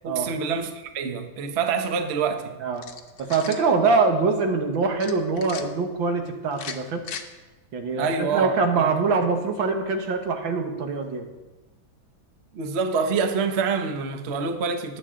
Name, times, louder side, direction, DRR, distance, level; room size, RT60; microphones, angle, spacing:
voice 1, 0.0-2.6 8.0-9.2 12.5-15.0, right 5 dB, 45° right, 6 dB, 0.9 m, -26 dB
sound 1, 2.7-3.7 5.0-5.6 6.5-7.2, left 7 dB, 60° left, 1.2 m, -37 dB
voice 2, 3.2-7.0 7.7-11.3, right 4 dB, 80° right, 4 dB, 2.0 m, -24 dB
19.5 x 7.6 x 3.7 m, 1.1 s
omnidirectional pair, 2.1 m